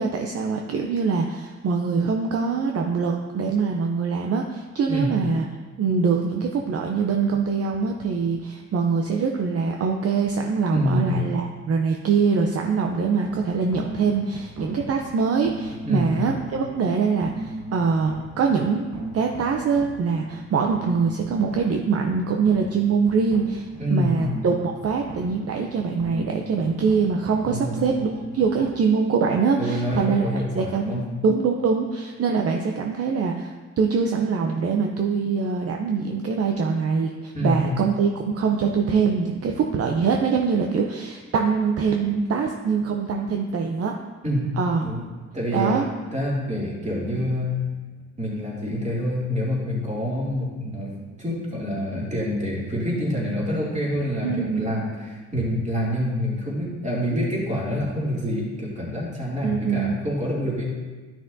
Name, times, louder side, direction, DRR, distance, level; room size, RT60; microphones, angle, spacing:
voice 1, 0.0-5.5 5.8-18.9 19.1-43.9 44.6-44.9 45.5-45.8 54.2-54.7 59.4-60.0, right 5 dB, 50° right, 2 dB, 0.7 m, -23 dB
voice 2, 10.7-11.1 15.8-16.1 23.8-24.2 27.4-27.7 29.6-31.1 37.3-37.6 44.2-44.5 44.8-45.0 45.3-47.5 48.2-50.9 51.2-60.6, equal, 25° right, -5 dB, 2.6 m, -26 dB
sound 1, 13.2-28.7, right 1 dB, 75° right, 1.2 m, -38 dB
11.5 x 6.0 x 2.7 m, 1.3 s
cardioid pair, 90°, 30 cm